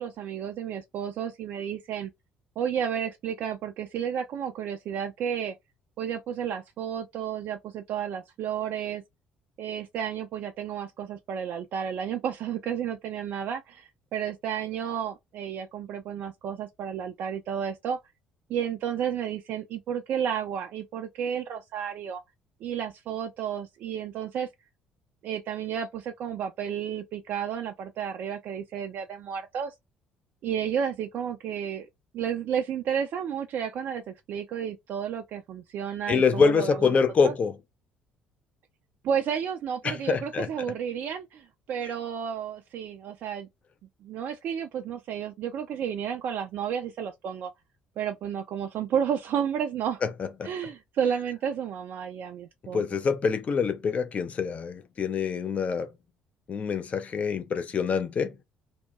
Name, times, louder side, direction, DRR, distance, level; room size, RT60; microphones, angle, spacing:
voice 1, 0.0-2.1 2.6-5.6 6.0-9.0 9.6-18.0 18.5-22.2 22.6-24.5 25.2-29.7 30.4-31.9 32.1-37.0 37.2-37.3 39.0-43.5 44.0-47.5 48.0-50.0 50.4-52.8, right 8 dB, 50° right, 0.3 m, -32 dB
voice 2, 36.1-37.5 39.8-40.5 50.0-50.1 50.4-50.5 52.7-55.9 56.5-58.3, left 5 dB, 35° left, 0.4 m, -25 dB
2.7 x 2.1 x 2.2 m
figure-of-eight pair, 50°, 4 cm